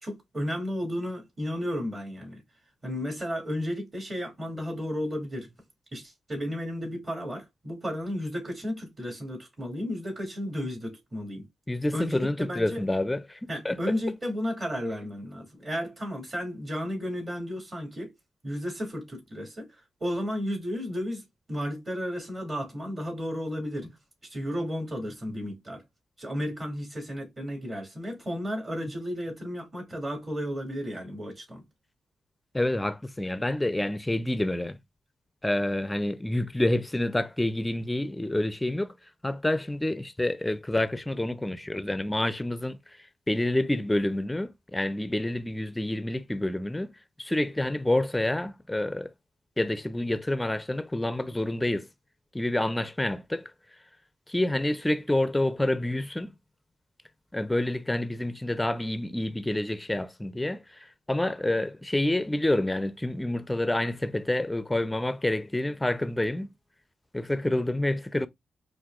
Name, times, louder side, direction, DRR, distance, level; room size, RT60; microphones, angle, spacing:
voice 1, 0.0-2.4 2.8-5.5 5.9-11.5 11.9-12.8 13.5-18.1 18.4-19.7 20.0-21.2 21.5-23.9 24.3-25.8 26.2-31.6, equal, 40° right, 2.6 m, -33 dB
voice 2, 11.7-13.4 13.6-13.8 32.5-34.8 35.4-38.9 39.2-42.8 43.3-46.9 47.2-49.1 49.6-51.9 52.3-53.5 54.3-56.3 57.3-66.5 67.1-68.3, left 1 dB, 15° left, 0.6 m, -28 dB
5.8 x 2.6 x 2.4 m
hypercardioid pair, 45°, 0 cm